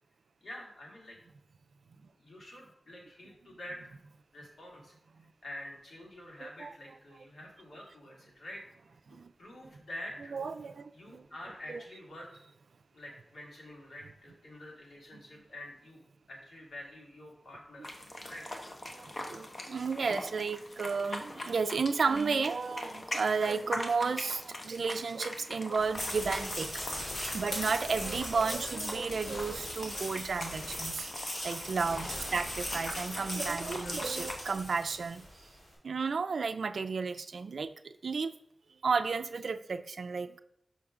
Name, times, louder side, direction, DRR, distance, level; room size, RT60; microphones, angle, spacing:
voice 1, 0.4-1.2 2.2-3.9 4.3-4.9 5.4-8.6 9.1-10.3 10.9-12.3 12.9-16.0 16.3-17.9 18.3-18.5 28.6-28.7 32.0-32.3 33.8-34.1, left 1 dB, 90° left, -3 dB, 2.2 m, -47 dB
voice 2, 6.4-6.7 9.1-9.3 10.3-11.3 11.7-11.8 15.1-15.2 18.9-26.7 27.3-31.1 31.4-35.3 35.8-38.3 38.8-40.4, right 5 dB, 85° right, 11 dB, 0.3 m, -33 dB
sound 1, 17.8-34.4, left 1 dB, 40° left, 0.9 m, -43 dB
sound 2, 25.8-35.3, left 1 dB, 70° left, 2.6 m, -39 dB
5.7 x 3.7 x 5.9 m, 0.72 s
wide cardioid pair, 115°, 0 cm